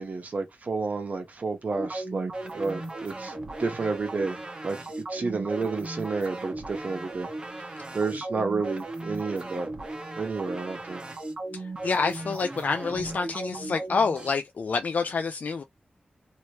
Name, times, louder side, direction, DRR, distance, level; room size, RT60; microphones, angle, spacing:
voice 1, 0.0-3.3 3.6-4.4 4.6-7.3 7.9-9.7 10.1-11.0, right 4 dB, 55° right, 1.0 m, -30 dB
sound 1, 1.7-14.3, right 2 dB, 30° right, 1.0 m, -37 dB
voice 2, 11.5-15.6, left 4 dB, 65° left, 0.3 m, -28 dB
2.8 x 2.8 x 3.1 m
wide cardioid pair, 105°, 3 cm